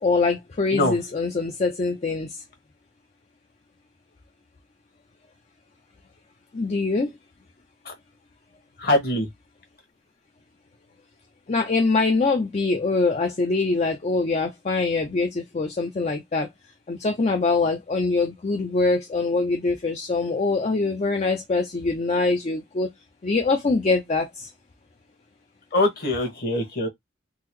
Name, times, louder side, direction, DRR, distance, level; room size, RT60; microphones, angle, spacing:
voice 1, 0.0-2.4 6.5-7.1 11.5-16.5 16.9-22.9 23.2-24.5, left 3 dB, 35° left, 0.4 m, -23 dB
voice 2, 8.8-9.3 25.7-26.9, left 1 dB, 50° left, 1.2 m, -23 dB
3.7 x 2.0 x 3.0 m
head